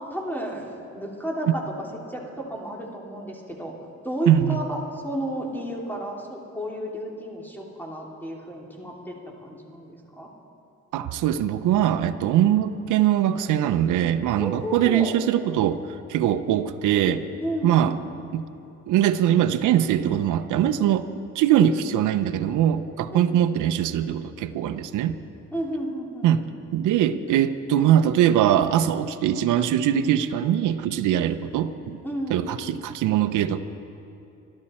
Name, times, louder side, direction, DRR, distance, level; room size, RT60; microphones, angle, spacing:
voice 1, 0.1-1.6 2.1-3.7 4.0-4.8 5.0-10.3 14.4-15.1 17.4-18.0 23.1-23.4 25.5-26.3 32.0-32.4, right 1 dB, 5° left, -1 dB, 2.7 m, -32 dB
voice 2, 4.3-4.6 10.9-17.2 17.6-18.0 18.3-18.5 18.9-21.1 21.3-25.1 26.2-26.4 26.7-32.0 32.3-33.6, right 10 dB, 80° right, 10 dB, 0.6 m, -22 dB
23.5 x 12.5 x 4.3 m, 2.8 s
cardioid pair, 90°, 30 cm